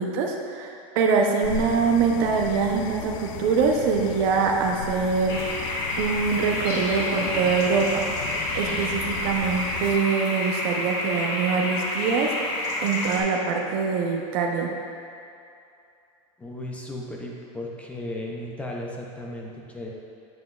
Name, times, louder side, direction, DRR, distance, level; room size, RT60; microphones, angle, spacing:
voice 1, 0.0-5.4 6.0-8.0 8.5-12.3 12.8-14.7, right 5 dB, 50° right, 1 dB, 0.6 m, -24 dB
sound 1, 1.4-10.0, left 7 dB, 80° left, 0.4 m, -36 dB
sound 2, 5.3-13.2, left 1 dB, 55° left, 1.4 m, -29 dB
voice 2, 16.4-19.9, left 1 dB, 10° left, -1 dB, 0.4 m, -35 dB
7.9 x 7.4 x 2.3 m, 2.6 s
supercardioid pair, 170°, 17 cm